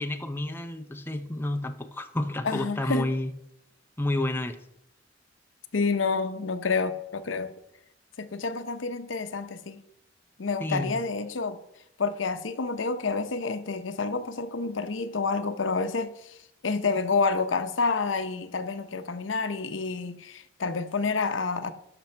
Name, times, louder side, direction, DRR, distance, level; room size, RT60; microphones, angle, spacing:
voice 1, 0.0-3.3 4.0-4.6 10.6-11.0, left 1 dB, 10° left, 0.6 m, -30 dB
voice 2, 2.4-3.1 5.7-7.5 8.2-9.8 10.4-11.6 12.0-16.4 16.6-21.7, left 4 dB, 90° left, 0.7 m, -28 dB
11.0 x 6.0 x 4.4 m
head